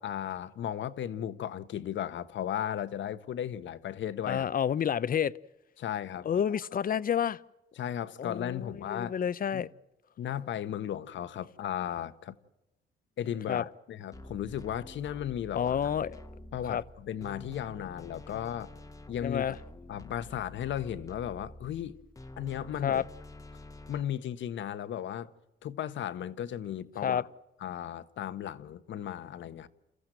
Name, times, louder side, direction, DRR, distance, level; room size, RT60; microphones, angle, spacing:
voice 1, 0.0-4.5 5.8-6.6 7.8-9.1 9.5-9.6 10.2-12.3 13.2-15.8 16.5-18.7 19.1-19.6 19.9-22.0 22.4-23.0 23.9-25.3 25.6-27.2 27.6-29.7, left 10 dB, 70° left, 1.2 m, -35 dB
voice 2, 4.3-5.3 6.2-7.4 8.2-9.7 13.5-13.6 15.5-16.2 16.7-16.8 19.2-19.6 22.8-23.0 27.0-27.2, left 8 dB, 45° left, 0.7 m, -29 dB
sound 1, 14.1-24.0, left 1 dB, 15° left, 1.2 m, -48 dB
29.0 x 14.5 x 9.1 m
cardioid pair, 90°, 20 cm